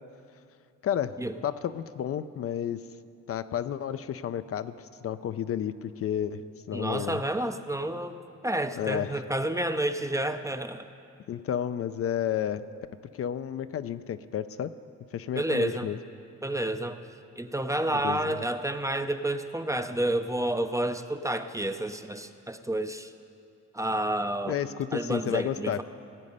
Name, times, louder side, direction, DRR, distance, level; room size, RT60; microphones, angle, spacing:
voice 1, 0.8-1.2 1.4-2.8 3.3-7.2 8.8-9.2 11.3-12.6 13.1-14.7 15.1-16.0 17.9-18.3 24.5-25.8, left 9 dB, 50° left, 12 dB, 0.5 m, -31 dB
voice 2, 6.7-8.2 8.4-10.9 15.4-15.9 16.4-17.0 17.4-23.1 23.7-24.6 24.9-25.8, right 1 dB, 10° right, 9 dB, 0.5 m, -30 dB
18.0 x 8.3 x 5.4 m, 2.4 s
cardioid pair, 90°, 30 cm